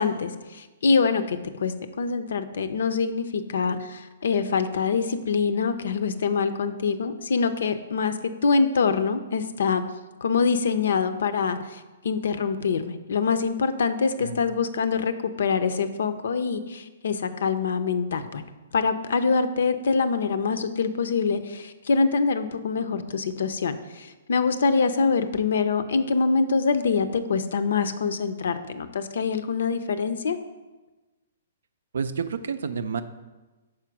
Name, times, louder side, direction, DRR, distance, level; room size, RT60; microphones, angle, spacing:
voice 1, 0.0-9.8 10.2-18.4 18.7-30.4, left 5 dB, 70° left, 11 dB, 0.5 m, -25 dB
voice 2, 31.9-33.0, right 6 dB, 70° right, 11 dB, 0.4 m, -29 dB
5.0 x 4.4 x 5.8 m, 1.2 s
hypercardioid pair, 125°, 0 cm